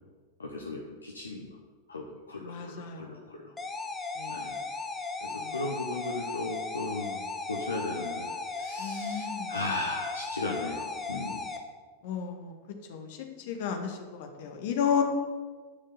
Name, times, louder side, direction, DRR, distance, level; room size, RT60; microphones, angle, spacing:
voice 1, 0.4-1.5 1.9-3.5 4.3-4.6 5.2-8.3 8.6-11.4, left 2 dB, 75° left, 1 dB, 1.2 m, -36 dB
voice 2, 2.4-3.3 4.2-4.5 5.3-5.6 8.8-9.5 12.0-12.5 12.9-13.2 13.5-15.0, left 7 dB, 50° left, 4 dB, 1.9 m, -33 dB
sound 1, 3.6-11.6, left 3 dB, 15° left, 1.3 m, -36 dB
11.5 x 6.5 x 8.2 m, 1.4 s
figure-of-eight pair, 90°, 0 cm